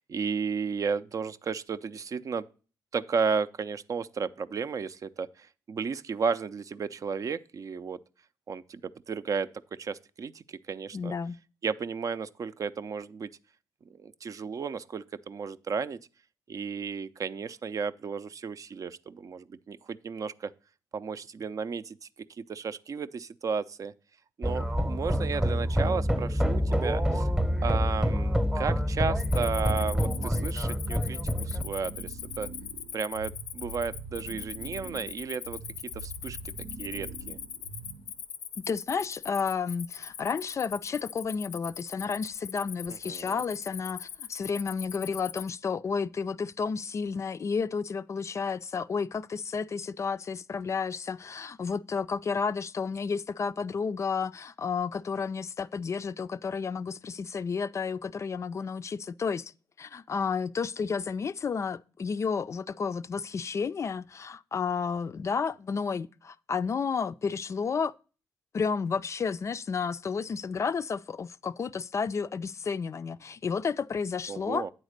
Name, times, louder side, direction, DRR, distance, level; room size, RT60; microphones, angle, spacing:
voice 1, 0.0-2.5 2.9-8.0 8.5-8.8 9.1-9.5 9.8-11.1 11.6-13.3 14.0-16.0 16.5-20.5 20.9-22.1 22.5-23.9 24.4-27.3 27.6-32.5 32.9-35.6 36.0-36.5 36.8-37.4 42.9-43.4 74.3-74.7, right 5 dB, 50° right, 0.5 m, -33 dB
voice 2, 10.9-11.4 38.7-59.5 59.8-67.9 68.5-74.7, left 5 dB, 40° left, 0.3 m, -31 dB
sound 1, 24.4-31.6, equal, 10° right, 0.8 m, -27 dB
sound 2, 29.0-38.2, right 3 dB, 85° right, 0.8 m, -43 dB
Cricket, 29.2-45.5, left 9 dB, 90° left, 0.6 m, -41 dB
8.8 x 4.0 x 6.5 m
cardioid pair, 70°, 7 cm